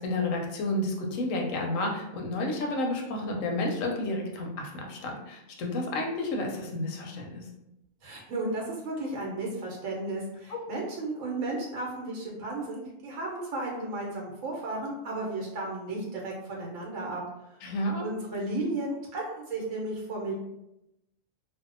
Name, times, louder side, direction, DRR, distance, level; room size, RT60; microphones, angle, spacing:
voice 1, 0.0-7.4 10.5-10.6 17.6-18.0, left 2 dB, 85° left, 1 dB, 1.0 m, -31 dB
voice 2, 8.0-17.2 18.0-20.3, right 2 dB, 85° right, -1 dB, 1.0 m, -34 dB
2.6 x 2.0 x 2.5 m, 0.87 s
omnidirectional pair, 1.3 m